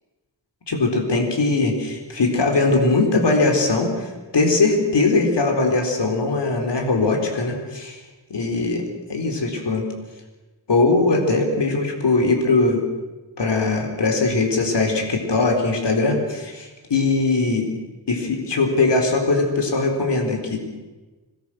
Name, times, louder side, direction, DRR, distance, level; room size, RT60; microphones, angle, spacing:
voice 1, 0.7-8.0 8.3-8.8 9.1-9.9 10.7-12.8 13.4-17.7 18.1-20.6, left 3 dB, 70° left, 3 dB, 4.3 m, -20 dB
26.5 x 20.0 x 6.3 m, 1.2 s
cardioid pair, 60°, 43 cm